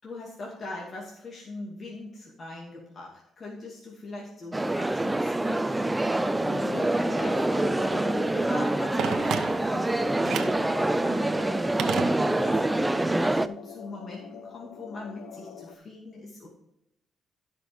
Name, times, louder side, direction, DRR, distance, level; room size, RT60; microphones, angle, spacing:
voice 1, 0.0-16.5, left 2 dB, 45° left, -3 dB, 2.3 m, -41 dB
sound 1, 4.5-13.5, right 2 dB, 10° right, 0.5 m, -26 dB
sound 2, 6.2-15.8, left 7 dB, 85° left, 0.8 m, -44 dB
Telephone, 9.0-9.9 10.2-10.7 11.8-12.6 12.9-13.0, right 7 dB, 75° right, 0.9 m, -32 dB
16.5 x 5.5 x 3.5 m, 0.83 s
cardioid pair, 90°, 0 cm